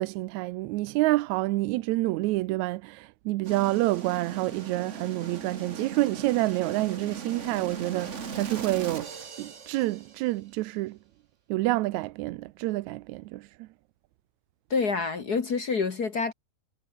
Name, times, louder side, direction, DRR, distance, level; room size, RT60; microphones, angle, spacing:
voice 1, 0.0-11.0 11.5-13.7, right 19 dB, 80° right, 1.8 m, -28 dB
sound 1, 3.4-10.3, right 6 dB, 55° right, 0.7 m, -39 dB
voice 2, 14.7-16.3, left 4 dB, 45° left, 1.3 m, -27 dB
omnidirectional pair, 3.7 m